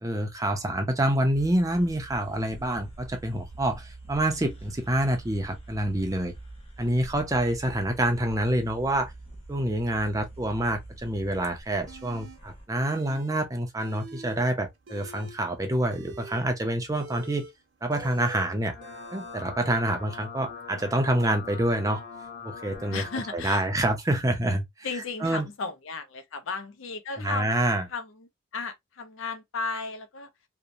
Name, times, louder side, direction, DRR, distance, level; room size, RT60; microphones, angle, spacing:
voice 1, 0.0-6.3 6.8-9.1 9.5-17.5 17.8-18.7 19.1-22.0 22.4-23.0 23.3-24.9 25.2-25.5 27.2-27.8, right 1 dB, 15° right, 0.5 m, -27 dB
sound 1, 1.3-12.6, right 2 dB, 30° left, 1.2 m, -45 dB
sound 2, 11.9-12.4 12.8-13.3 13.6-14.4 14.8-19.4, right 3 dB, 65° right, 0.8 m, -45 dB
sound 3, 18.4-23.4, left 5 dB, 65° left, 1.1 m, -42 dB
voice 2, 22.9-23.6 24.8-27.6 27.9-30.3, left 4 dB, 85° left, 0.5 m, -35 dB
2.8 x 2.1 x 2.4 m
head